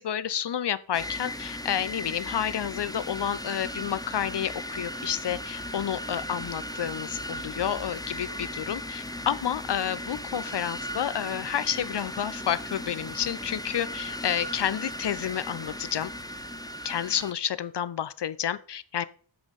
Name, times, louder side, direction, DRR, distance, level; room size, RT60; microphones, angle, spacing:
voice 1, 0.0-16.1 16.8-19.1, left 9 dB, 55° left, 17 dB, 0.5 m, -30 dB
sound 1, 0.9-17.3, left 1 dB, 10° left, 0.5 m, -37 dB
sound 2, 5.0-5.1 5.6-8.0 8.5-11.0 11.4-13.9 14.4-16.7, left 4 dB, 30° left, 0.9 m, -57 dB
7.1 x 5.2 x 5.3 m, 0.44 s
wide cardioid pair, 45°, 49 cm